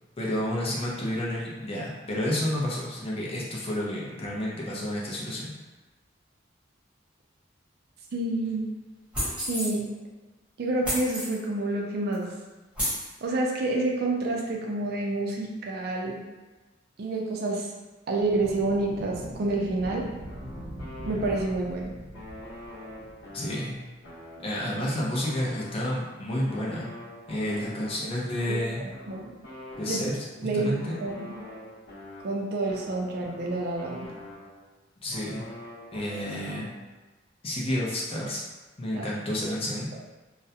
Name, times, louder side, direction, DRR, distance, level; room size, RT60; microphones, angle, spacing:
voice 1, 0.2-5.5 23.3-23.8 24.4-26.9 27.3-28.8 29.8-30.2 30.5-31.0 35.0-35.5 35.9-36.7 37.4-38.4 38.8-39.9, left 1 dB, 30° left, -4 dB, 0.5 m, -30 dB
voice 2, 8.1-8.7 9.4-9.9 10.6-12.3 13.2-16.2 17.0-17.7 18.1-20.0 21.1-22.0 28.0-28.1 28.5-29.2 29.8-30.0 30.4-31.4 32.2-34.1 38.9-39.1, right 2 dB, 55° right, -1 dB, 0.4 m, -28 dB
sound 1, 9.1-9.7 10.8-11.4 12.1-12.2 12.7-13.1, equal, 5° right, 0.9 m, -30 dB
sound 2, 18.2-23.8, equal, 90° right, 0.7 m, -42 dB
sound 3, 20.2-21.8 22.1-26.1 26.5-30.4 30.8-34.7 35.1-36.9, left 1 dB, 60° left, 0.9 m, -45 dB
2.3 x 2.1 x 2.7 m, 1.2 s
head